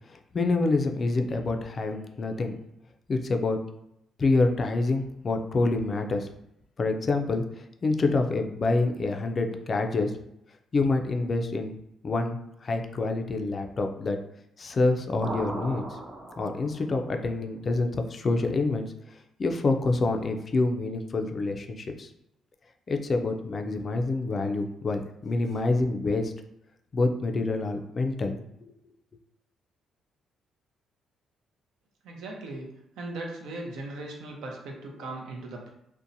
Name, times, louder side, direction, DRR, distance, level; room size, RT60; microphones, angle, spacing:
voice 1, 0.1-2.6 3.1-3.6 4.2-6.3 6.8-10.1 10.7-11.7 12.0-14.2 14.6-15.8 16.4-18.9 19.4-22.1 22.9-26.3 26.9-28.4, left 3 dB, 40° left, 5 dB, 0.3 m, -27 dB
sound 1, 15.2-16.9, right 2 dB, 30° right, 0.5 m, -36 dB
voice 2, 32.0-32.7 33.0-35.7, right 2 dB, 80° right, 0 dB, 0.6 m, -38 dB
2.6 x 2.1 x 2.6 m, 0.81 s
cardioid pair, 90°, 0 cm